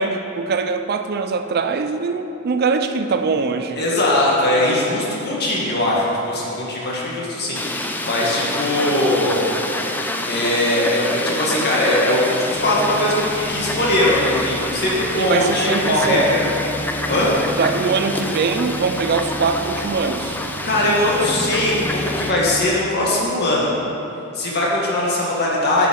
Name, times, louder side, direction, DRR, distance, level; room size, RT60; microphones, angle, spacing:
voice 1, 0.0-3.8 15.2-16.3 17.6-20.4, right 4 dB, 45° right, 8 dB, 0.4 m, -22 dB
voice 2, 3.8-9.4 10.3-16.5 17.1-17.3 20.6-23.7 24.3-25.9, left 1 dB, 50° left, -4 dB, 1.9 m, -20 dB
Fowl, 7.6-22.3, left 1 dB, 10° left, 0.5 m, -27 dB
sound 1, 12.5-22.7, equal, 10° right, 2.3 m, -34 dB
9.4 x 6.0 x 5.3 m, 2.9 s
head